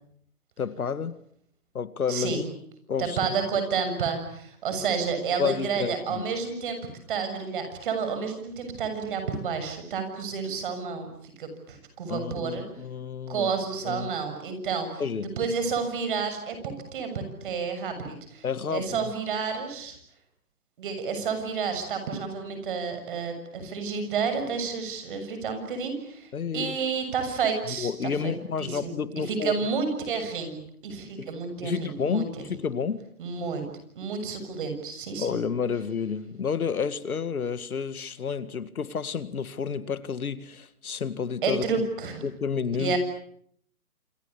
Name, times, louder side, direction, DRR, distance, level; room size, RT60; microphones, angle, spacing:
voice 1, 0.6-1.2 1.7-2.4 2.9-3.2 5.4-6.3 12.1-13.5 13.8-14.1 15.0-15.3 18.4-19.1 26.3-26.8 27.7-29.5 31.2-31.3 31.6-33.0 35.2-41.7 42.2-43.0, left 6 dB, 70° left, 13 dB, 2.0 m, -30 dB
voice 2, 2.1-2.4 3.0-6.8 7.1-12.6 13.3-15.0 15.4-20.0 20.8-28.3 28.6-32.3 33.2-33.7 33.9-35.4 41.4-42.2 42.8-43.0, right 5 dB, 35° right, 8 dB, 7.0 m, -30 dB
28.0 x 24.0 x 8.5 m, 0.69 s
hypercardioid pair, 165°, 44 cm